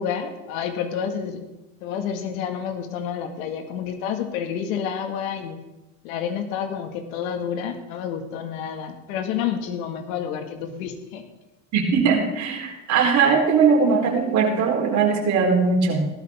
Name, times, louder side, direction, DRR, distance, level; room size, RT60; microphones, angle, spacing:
voice 1, 0.0-1.4 1.8-5.6 6.0-11.2, left 8 dB, 75° left, 6 dB, 2.0 m, -29 dB
voice 2, 11.7-16.1, right 5 dB, 40° right, 0 dB, 4.0 m, -20 dB
17.0 x 12.5 x 3.6 m, 1.0 s
supercardioid pair, 120°, 41 cm